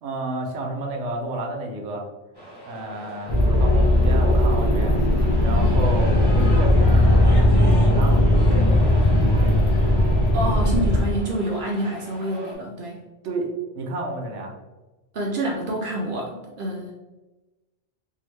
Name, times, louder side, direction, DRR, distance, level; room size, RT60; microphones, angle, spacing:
voice 1, 0.0-2.0 2.7-5.0 5.4-9.6 13.2-13.5 13.8-14.5, right 1 dB, 75° right, 2 dB, 0.9 m, -31 dB
sound 1, 2.4-12.6, right 1 dB, 25° left, 0.8 m, -39 dB
sound 2, 3.3-11.0, left 1 dB, 45° left, 0.5 m, -18 dB
voice 2, 10.3-13.0 15.1-16.9, right 1 dB, 60° right, -1 dB, 0.6 m, -27 dB
2.8 x 2.4 x 3.1 m, 1.1 s
omnidirectional pair, 1.2 m